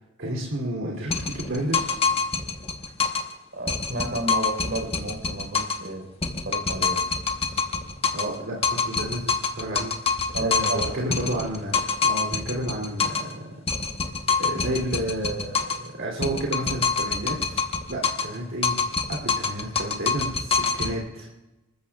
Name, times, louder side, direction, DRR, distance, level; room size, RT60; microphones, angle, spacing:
voice 1, 0.2-2.0 8.1-13.4 14.4-17.6 17.9-21.3, right 1 dB, 80° right, -2 dB, 2.9 m, -31 dB
sound 1, 1.1-3.3 3.7-5.9 6.2-8.4 8.6-13.3 13.7-15.9 16.2-18.4 18.6-20.9, left 5 dB, 30° left, 1.1 m, -26 dB
voice 2, 3.5-6.1 6.4-7.1 10.3-11.1, right 2 dB, 65° right, 3 dB, 4.1 m, -31 dB
26.5 x 14.0 x 2.4 m, 1.0 s
head